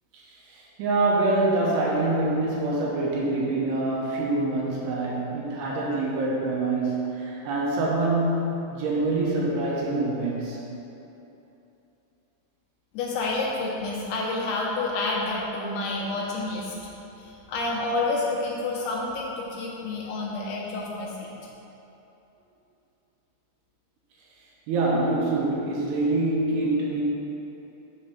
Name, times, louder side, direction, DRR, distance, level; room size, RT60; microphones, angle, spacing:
voice 1, 0.1-10.6 24.7-27.0, right 2 dB, 75° right, -4 dB, 2.7 m, -25 dB
voice 2, 12.9-16.7 17.2-21.3, left 2 dB, 80° left, -3 dB, 2.3 m, -29 dB
6.5 x 5.1 x 5.6 m, 3.0 s
omnidirectional pair, 5.4 m